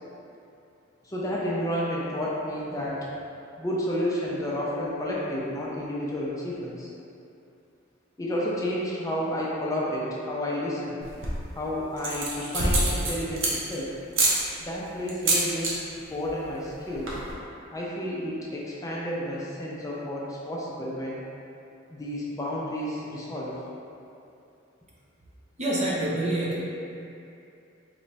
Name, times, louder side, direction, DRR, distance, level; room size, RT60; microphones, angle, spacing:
voice 1, 1.0-3.1 3.6-6.9 8.2-11.0 11.5-13.9 14.6-17.2 17.7-21.2 21.9-23.6, equal, 15° left, -6 dB, 0.5 m, -31 dB
sound 1, 11.0-11.5 12.0-13.8 14.1-14.4 15.1-15.7 16.0-16.3 16.6-16.7 16.9-17.3, right 2 dB, 70° right, 0.8 m, -26 dB
voice 2, 25.6-26.6, right 1 dB, 35° right, -6 dB, 0.7 m, -26 dB
3.2 x 3.0 x 4.0 m, 2.7 s
head